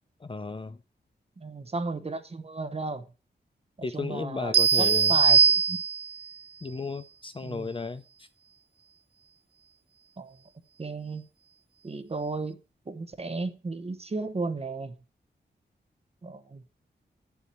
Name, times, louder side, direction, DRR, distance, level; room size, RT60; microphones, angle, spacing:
voice 1, 0.2-0.8 3.8-5.2 6.6-8.0, left 4 dB, 30° left, 0.6 m, -34 dB
voice 2, 1.4-3.0 3.9-5.4 5.7-5.8 7.4-7.7 10.2-10.3 10.8-11.2 11.8-12.6 12.9-14.9 16.2-16.6, right 3 dB, 35° right, 1.0 m, -34 dB
sound 1, 4.5-6.3, right 6 dB, 70° right, 0.4 m, -21 dB
8.9 x 7.1 x 4.5 m
wide cardioid pair, 105°, 18 cm